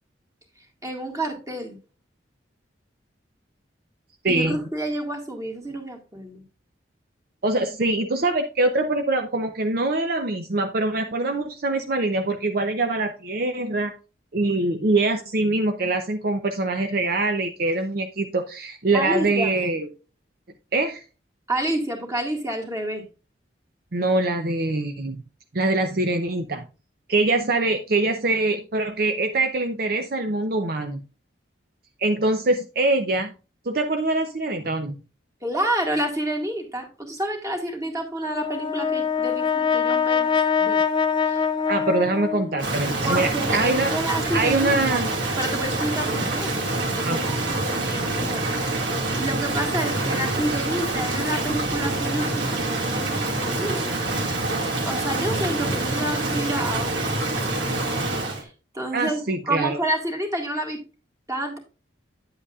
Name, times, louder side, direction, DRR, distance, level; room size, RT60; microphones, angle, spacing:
voice 1, 0.8-1.8 4.3-6.4 18.9-19.5 21.5-23.0 35.4-40.3 40.6-40.8 41.2-41.4 43.0-45.0 45.4-46.5 47.0-53.9 54.8-57.7 58.7-60.8 61.3-61.6, right 1 dB, 20° right, 2 dB, 1.9 m, -29 dB
voice 2, 4.2-4.6 7.4-13.9 14.3-19.9 20.7-21.0 23.9-25.2 25.5-26.6 27.1-31.0 32.0-33.3 33.6-35.0 41.7-43.9 44.3-45.1 47.0-47.2 58.9-59.8, right 2 dB, 55° right, 5 dB, 0.7 m, -23 dB
Brass instrument, 38.3-42.7, left 6 dB, 25° left, 0.5 m, -23 dB
Rain, 42.6-58.4, right 2 dB, 80° right, 2.1 m, -26 dB
9.7 x 7.9 x 2.4 m, 0.33 s
head